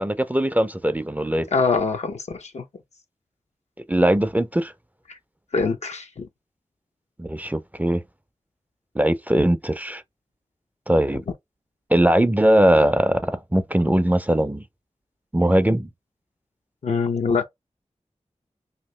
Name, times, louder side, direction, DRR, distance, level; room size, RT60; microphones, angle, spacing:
voice 1, 0.0-1.5 3.9-4.7 7.2-8.0 9.0-10.0 10.9-11.2 11.9-14.6 15.3-15.9, right 1 dB, 15° right, 0.4 m, -20 dB
voice 2, 1.5-2.6 5.5-6.1 16.8-17.4, left 4 dB, 70° left, 0.5 m, -23 dB
2.8 x 2.6 x 3.1 m
wide cardioid pair, 50°, 12 cm